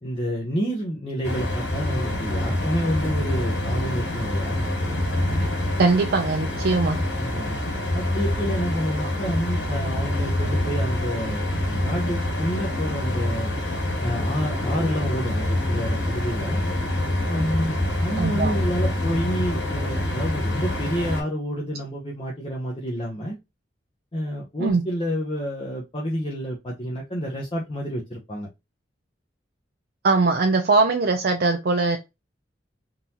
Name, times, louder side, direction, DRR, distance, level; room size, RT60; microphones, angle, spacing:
voice 1, 0.0-4.7 7.2-7.5 7.9-11.4 11.8-13.5 14.0-16.6 17.3-23.4 24.1-28.5, equal, 30° left, 0.7 m, -29 dB
sound 1, 1.2-21.2, left 1 dB, 80° left, 2.0 m, -26 dB
voice 2, 5.8-7.0 18.2-18.5 24.6-24.8 30.0-32.0, right 3 dB, 60° right, 0.5 m, -21 dB
3.8 x 2.7 x 2.8 m
head